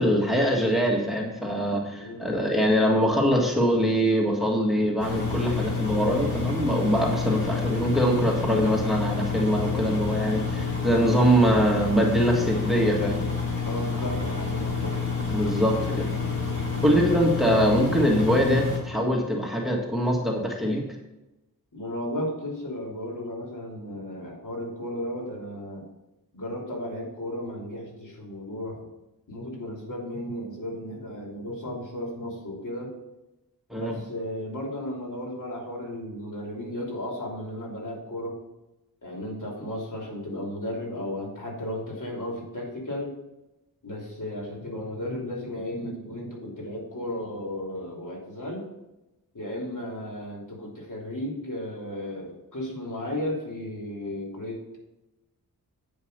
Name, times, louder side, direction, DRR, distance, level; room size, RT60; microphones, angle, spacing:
voice 1, 0.0-13.2 15.3-16.1 16.8-20.9 33.7-34.0, equal, ahead, 0 dB, 1.7 m, -23 dB
voice 2, 2.0-2.3 13.6-15.1 21.7-25.8 26.3-28.9 29.3-32.9 33.7-38.4 39.0-43.2 43.8-48.6 49.3-54.8, left 1 dB, 55° left, -1 dB, 3.0 m, -34 dB
Engine, 5.0-18.8, left 4 dB, 40° left, 3.8 m, -29 dB
9.2 x 5.2 x 6.6 m, 0.97 s
cardioid pair, 70°, 37 cm